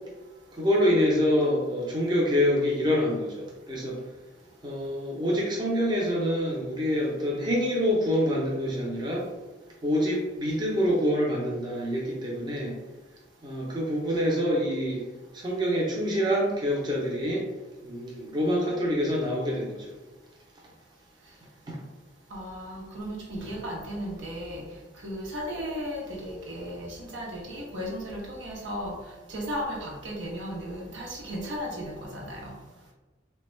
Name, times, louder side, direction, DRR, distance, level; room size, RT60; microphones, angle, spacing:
voice 1, 0.5-4.0 4.6-9.3 9.8-12.8 13.4-15.0 15.3-17.4 17.8-19.8 21.7-21.8, equal, 25° right, -3 dB, 0.5 m, -26 dB
voice 2, 22.3-32.5, equal, 75° right, -1 dB, 0.8 m, -35 dB
3.3 x 2.2 x 3.0 m, 1.1 s
head